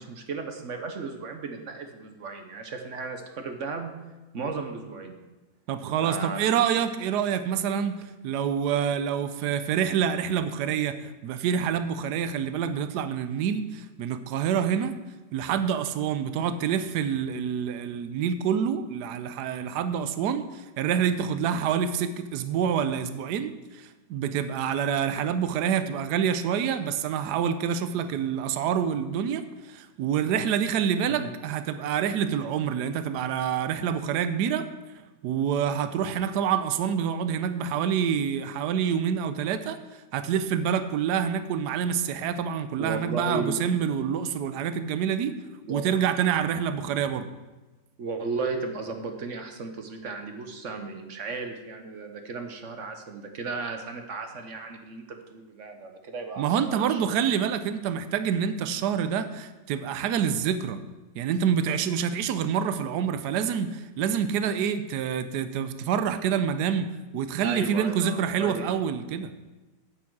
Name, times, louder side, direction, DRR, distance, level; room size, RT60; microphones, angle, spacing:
voice 1, 0.0-3.9 4.3-5.2 6.0-6.6 31.2-31.3 42.8-43.7 45.6-45.8 48.0-57.2 67.4-68.7, right 4 dB, 50° right, 5 dB, 1.1 m, -35 dB
voice 2, 5.7-14.9 15.3-29.4 29.7-34.6 35.2-39.8 40.1-45.3 45.7-47.3 56.4-60.8 61.2-66.9 67.1-69.3, right 8 dB, 75° right, 10 dB, 1.2 m, -27 dB
8.5 x 8.4 x 4.7 m, 1.1 s
omnidirectional pair, 1.8 m